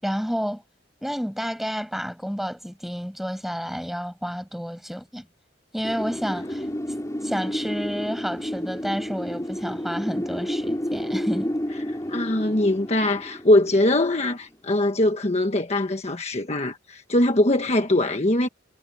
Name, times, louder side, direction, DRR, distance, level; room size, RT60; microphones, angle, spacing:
voice 1, 0.0-0.6 1.0-5.3 5.7-6.7 7.2-11.6, equal, ahead, 6.1 m, -30 dB
Wind, 5.8-14.6, equal, 20° left, 4.4 m, -31 dB
voice 2, 12.1-18.5, left 1 dB, 35° left, 1.3 m, -22 dB
head